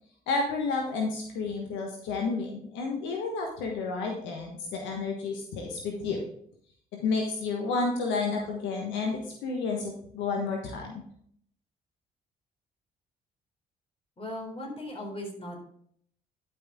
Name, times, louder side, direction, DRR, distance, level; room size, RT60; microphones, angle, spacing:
voice 1, 0.3-6.2 6.9-11.0, left 4 dB, 75° left, 1 dB, 1.3 m, -31 dB
voice 2, 14.2-15.6, left 1 dB, 30° left, 1 dB, 3.8 m, -38 dB
11.0 x 5.6 x 3.6 m, 0.64 s
hypercardioid pair, 50°, 19 cm